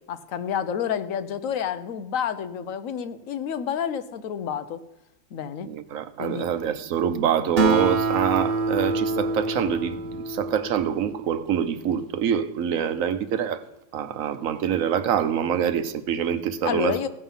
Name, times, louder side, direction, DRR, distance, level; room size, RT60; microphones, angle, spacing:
voice 1, 0.1-4.8 5.3-5.7 6.2-6.5 16.6-17.1, left 8 dB, 75° left, 1.1 m, -29 dB
voice 2, 5.6-13.6 13.9-16.9, right 8 dB, 80° right, 1.1 m, -25 dB
Acoustic guitar, 7.6-11.3, right 3 dB, 50° right, 1.2 m, -26 dB
16.0 x 5.6 x 5.6 m
omnidirectional pair, 1.4 m